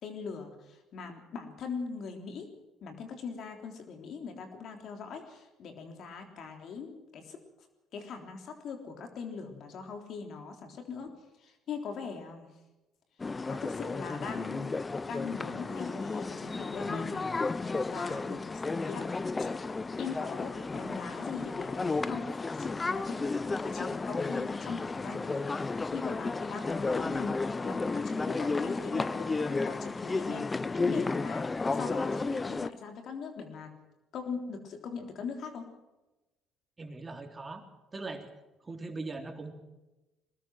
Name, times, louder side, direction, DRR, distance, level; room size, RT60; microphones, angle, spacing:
voice 1, 0.0-2.5 2.8-7.4 7.9-11.1 11.4-12.5 13.5-17.3 17.8-19.5 20.0-22.3 22.6-23.3 23.5-33.7 34.1-35.6, left 5 dB, 60° left, 5 dB, 3.5 m, -41 dB
sound 1, 13.2-32.7, left 3 dB, 25° left, 0.8 m, -33 dB
voice 2, 36.8-37.7 37.9-38.3 38.6-39.5, right 3 dB, 30° right, 4 dB, 3.5 m, -40 dB
22.5 x 19.5 x 6.3 m, 1.1 s
hypercardioid pair, 60°, 0 cm